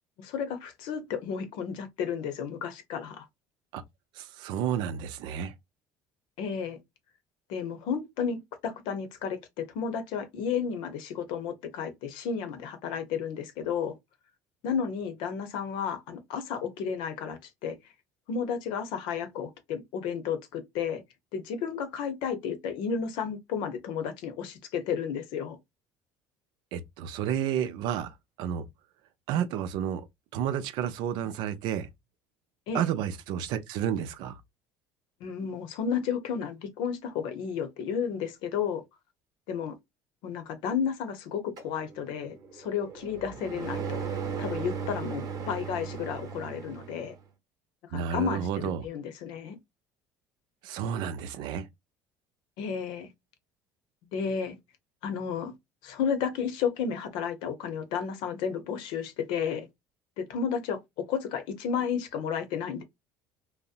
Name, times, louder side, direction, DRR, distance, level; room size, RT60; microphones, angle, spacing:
voice 1, 0.2-3.3 6.4-6.8 7.5-14.0 14.6-17.8 18.3-21.0 21.3-25.6 32.7-32.9 35.2-38.8 39.5-39.7 40.2-44.0 44.4-47.1 47.9-48.5 48.8-49.6 52.6-53.1 54.1-54.6 55.0-55.5 55.8-59.7 60.2-62.8, left 7 dB, 70° left, 0.7 m, -32 dB
voice 2, 4.2-5.5 26.7-28.7 29.3-30.1 30.3-31.9 32.7-34.4 47.9-48.9 50.6-51.7, right 9 dB, 70° right, 0.4 m, -31 dB
sound 1, 41.6-47.1, right 6 dB, 50° right, 0.9 m, -37 dB
2.7 x 2.0 x 2.4 m
supercardioid pair, 80°, 8 cm